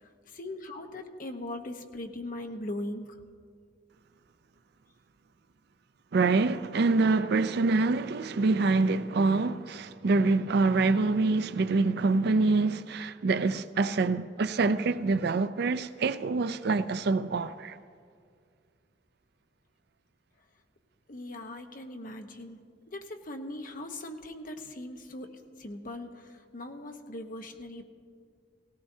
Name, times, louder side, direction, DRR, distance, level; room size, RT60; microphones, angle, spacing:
voice 1, 0.0-3.2 21.1-22.6 22.9-25.3 25.6-27.8, left 1 dB, 50° left, 1.0 m, -40 dB
voice 2, 6.1-17.8, right 3 dB, 60° right, 0.4 m, -25 dB
18.0 x 17.0 x 2.8 m
head